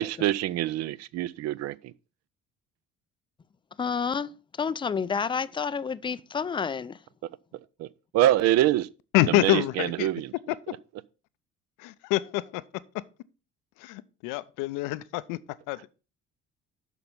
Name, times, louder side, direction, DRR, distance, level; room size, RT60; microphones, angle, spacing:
voice 1, 0.0-1.9 7.8-7.9 8.1-8.9 9.3-10.3, right 14 dB, 45° right, 0.5 m, -25 dB
voice 2, 3.8-4.3 4.6-7.0, left 6 dB, 15° left, 0.4 m, -29 dB
voice 3, 9.1-10.1 11.8-12.6 13.8-15.4 15.7-15.9, left 17 dB, 60° left, 0.6 m, -26 dB
8.0 x 5.8 x 5.3 m
figure-of-eight pair, 50°, 36 cm